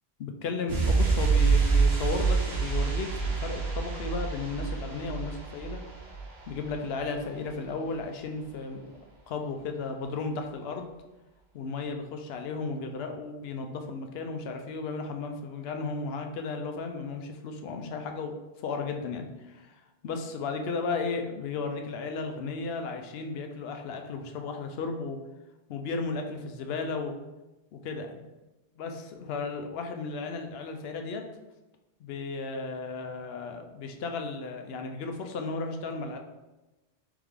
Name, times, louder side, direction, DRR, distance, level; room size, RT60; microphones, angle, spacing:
voice 1, 0.2-5.8 6.5-9.0 9.3-10.9 11.5-25.2 25.7-27.2 27.7-28.2 28.8-31.2 32.0-36.2, left 4 dB, 70° left, 4 dB, 0.8 m, -34 dB
sound 1, 0.7-7.2 7.4-7.6, right 4 dB, 70° right, 1.1 m, -27 dB
3.6 x 3.4 x 3.3 m, 1.1 s
omnidirectional pair, 1.1 m